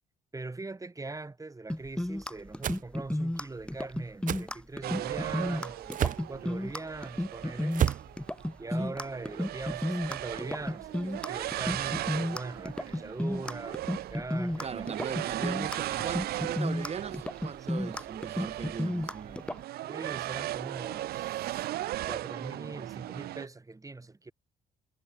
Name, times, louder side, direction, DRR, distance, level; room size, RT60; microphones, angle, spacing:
voice 1, 0.3-7.8 8.6-14.9 17.8-18.0 19.8-21.7 22.0-24.3, right 3 dB, 20° right, 3.6 m, -41 dB
sound 1, 1.7-19.6, left 1 dB, 5° left, 3.8 m, -33 dB
sound 2, 2.6-2.8 4.3-4.4 5.9-6.3 7.7-8.1, right 10 dB, 55° right, 0.9 m, -28 dB
sound 3, 4.8-23.5, right 15 dB, 75° right, 2.6 m, -38 dB
voice 2, 14.6-19.4, right 6 dB, 40° right, 2.1 m, -39 dB
supercardioid pair, 65°, 16 cm